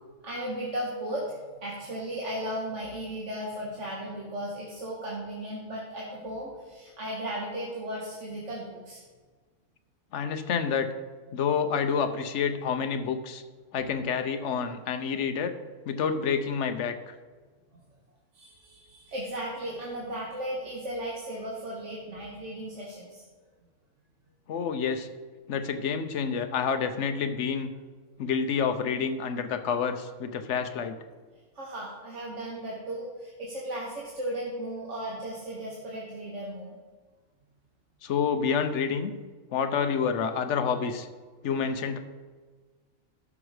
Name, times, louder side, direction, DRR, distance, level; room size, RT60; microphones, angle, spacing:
voice 1, 0.2-9.0 17.7-17.8 18.3-23.2 31.5-36.8, right 1 dB, 70° right, -4 dB, 1.8 m, -36 dB
voice 2, 10.1-10.9 11.3-13.4 13.7-15.5 15.8-17.1 24.5-25.1 25.5-27.7 28.2-31.0 38.0-39.1 39.5-41.1 41.4-42.0, left 6 dB, 65° left, 8 dB, 1.1 m, -28 dB
12.5 x 6.1 x 4.9 m, 1.4 s
omnidirectional pair, 1.3 m